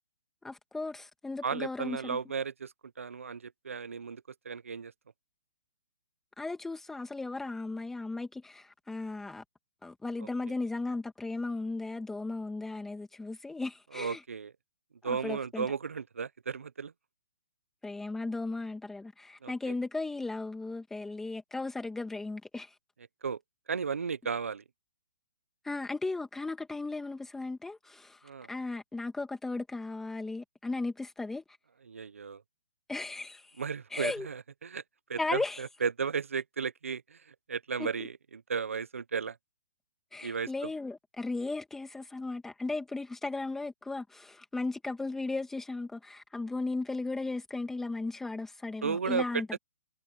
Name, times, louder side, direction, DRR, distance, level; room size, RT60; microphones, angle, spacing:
voice 1, 0.4-2.2 6.4-9.4 9.8-14.2 15.0-15.7 17.8-22.8 25.6-31.4 32.9-33.6 33.9-34.3 35.2-35.6 37.8-38.1 40.1-49.6, left 3 dB, 5° left, 1.9 m, -36 dB
voice 2, 1.4-4.9 10.4-10.5 13.9-14.5 15.0-16.9 19.4-19.7 23.2-23.4 23.7-24.6 28.2-28.5 31.9-32.4 33.6-34.8 35.1-39.4 40.2-40.5 48.8-49.6, right 6 dB, 85° right, 1.2 m, -34 dB
hypercardioid pair, 145°, 7 cm